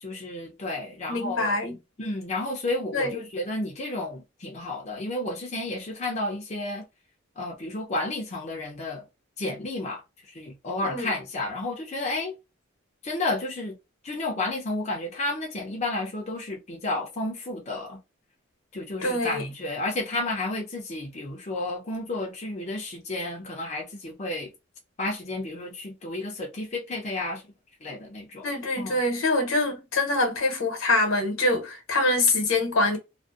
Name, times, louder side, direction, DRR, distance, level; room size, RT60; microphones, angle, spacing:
voice 1, 0.0-1.6 2.0-6.8 7.4-9.0 9.4-10.0 10.3-12.3 13.0-13.8 14.0-18.0 18.7-24.5 25.0-27.4 27.8-28.5 28.8-29.0, left 2 dB, 35° left, 0.5 m, -31 dB
voice 2, 1.1-1.8 2.9-3.2 10.8-11.1 19.0-19.5 28.4-33.0, left 2 dB, 75° left, 0.9 m, -25 dB
2.5 x 2.1 x 2.3 m
head